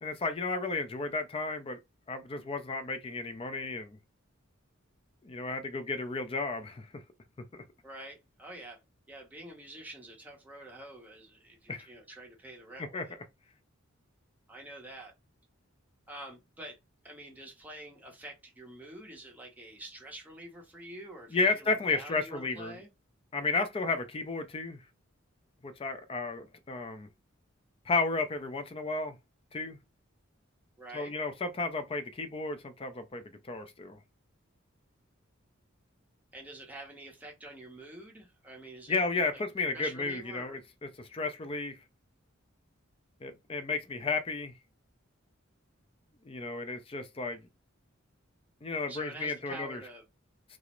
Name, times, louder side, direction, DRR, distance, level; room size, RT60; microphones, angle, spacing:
voice 1, 0.0-1.8 2.1-4.0 5.2-7.0 11.7-11.9 12.9-13.1 21.3-22.8 23.3-24.8 25.6-27.1 27.9-29.2 29.5-29.8 30.9-34.0 38.9-41.8 43.2-44.5 46.2-47.4 48.6-49.8, left 3 dB, 25° left, 0.4 m, -33 dB
voice 2, 7.8-8.8 9.1-13.1 14.5-15.1 16.1-16.8 17.0-22.9 30.8-31.1 36.3-39.0 39.3-39.4 39.7-40.6 48.9-50.0, right 1 dB, 10° right, 0.7 m, -47 dB
2.4 x 2.0 x 2.9 m
head